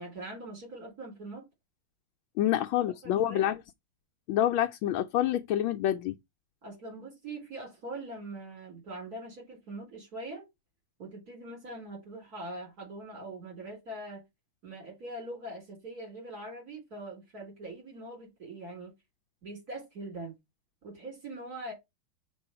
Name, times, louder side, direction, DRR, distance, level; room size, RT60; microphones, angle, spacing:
voice 1, 0.0-1.4 2.7-3.5 6.6-10.4 11.0-14.2 14.6-18.9 19.4-20.4 20.8-21.7, right 2 dB, 50° right, 4.5 m, -42 dB
voice 2, 2.4-3.6 4.3-6.1, left 11 dB, 85° left, 1.4 m, -27 dB
6.1 x 3.8 x 5.7 m
omnidirectional pair, 2.1 m